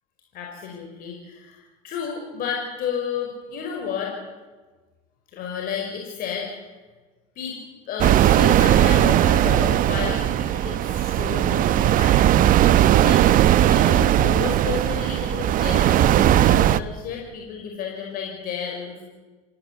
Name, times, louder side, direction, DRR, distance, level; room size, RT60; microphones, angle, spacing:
voice 1, 0.3-4.1 5.3-6.5 7.4-7.6 7.9-13.2 13.7-19.0, left 7 dB, 55° left, 0 dB, 5.4 m, -32 dB
sound 1, 8.0-16.8, right 12 dB, 50° right, 0.9 m, -18 dB
26.0 x 17.5 x 8.4 m, 1.3 s
hypercardioid pair, 90°, 18 cm